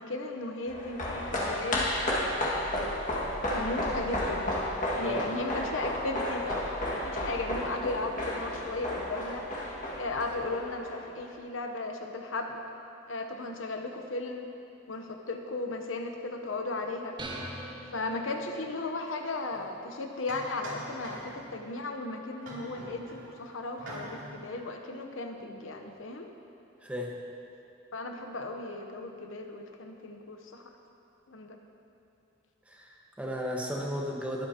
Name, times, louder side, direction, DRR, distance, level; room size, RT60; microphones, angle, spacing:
voice 1, 0.0-1.9 2.7-3.0 3.5-4.5 5.0-6.7 6.9-9.4 10.0-12.6 13.1-14.5 14.9-17.2 17.9-26.3 27.9-30.6 31.3-31.6, left 2 dB, 80° left, 4 dB, 0.9 m, -36 dB
sound 1, 0.7-11.2 11.5-11.6, left 1 dB, 40° left, 1.8 m, -32 dB
sound 2, 17.2-18.8, right 1 dB, 25° right, 1.0 m, -41 dB
sound 3, 19.5-19.6 20.3-21.6 22.4-23.3 23.8-24.4, right 1 dB, 90° right, 2.6 m, -43 dB
voice 2, 26.8-27.1 32.7-34.5, equal, 5° right, -2 dB, 1.3 m, -34 dB
21.5 x 8.2 x 2.9 m, 2.8 s
head